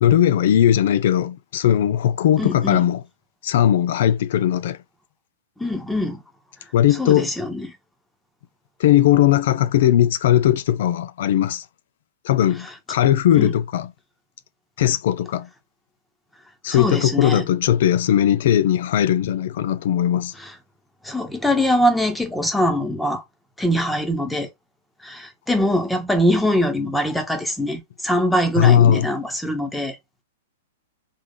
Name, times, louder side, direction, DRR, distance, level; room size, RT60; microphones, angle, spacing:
voice 1, 0.0-3.0 3.4-4.8 6.7-7.3 8.8-11.6 12.2-13.9 14.8-15.5 16.6-20.3 28.6-29.1, left 11 dB, 55° left, 0.5 m, -18 dB
voice 2, 2.4-2.8 5.6-6.2 7.0-7.7 13.4-13.5 16.7-17.5 20.4-20.5 21.0-23.2 23.6-24.5 25.0-30.0, equal, 5° left, 1.1 m, -22 dB
3.7 x 3.4 x 3.8 m
figure-of-eight pair, 105°, 0 cm